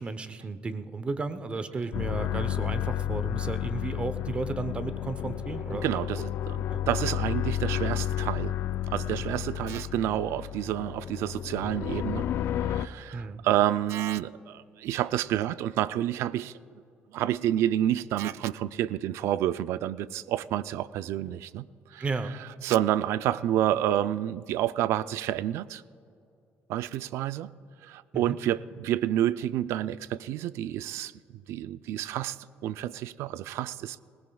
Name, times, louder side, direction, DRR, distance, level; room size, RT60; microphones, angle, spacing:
voice 1, 0.0-6.0 6.7-6.8 9.1-9.4 13.1-13.4 22.0-22.3 28.1-28.4, right 3 dB, 25° right, 11 dB, 0.7 m, -34 dB
sound 1, 1.9-12.9, left 11 dB, 60° left, 0.3 m, -31 dB
voice 2, 5.8-8.5 8.9-12.3 12.6-16.5 17.1-21.7 21.9-22.0 22.6-25.8 26.7-27.5 27.8-31.1 31.5-32.4 32.6-34.0, right 12 dB, 80° right, 16 dB, 0.4 m, -29 dB
20.5 x 18.5 x 2.3 m, 2.4 s
cardioid pair, 135°, 5 cm